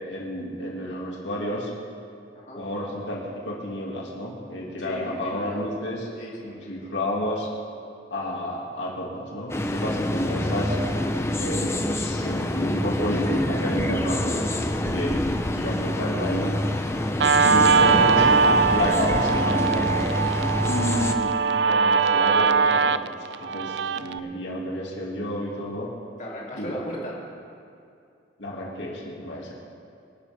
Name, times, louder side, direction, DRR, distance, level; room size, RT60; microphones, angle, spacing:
voice 1, 0.0-1.7 2.5-6.0 6.4-7.5 8.1-10.8 11.4-15.2 15.5-16.5 17.4-20.1 20.6-23.0 23.4-25.9 26.6-26.8 28.4-29.5, left 1 dB, 90° left, -3 dB, 2.3 m, -30 dB
voice 2, 4.8-5.6 6.1-6.9 26.2-27.2, equal, 40° left, -4 dB, 2.8 m, -37 dB
sound 1, 9.5-21.1, left 1 dB, 15° left, 0.6 m, -26 dB
Guitar, 17.2-24.2, right 5 dB, 75° right, 0.4 m, -21 dB
25.5 x 10.5 x 3.5 m, 2.5 s
head